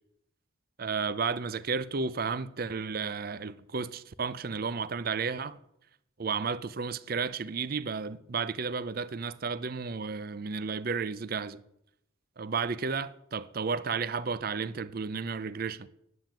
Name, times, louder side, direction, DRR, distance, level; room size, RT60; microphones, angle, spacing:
voice 1, 0.8-5.6 6.2-11.6 12.4-15.9, right 5 dB, 45° right, 0.5 m, -33 dB
9.5 x 9.1 x 9.0 m
head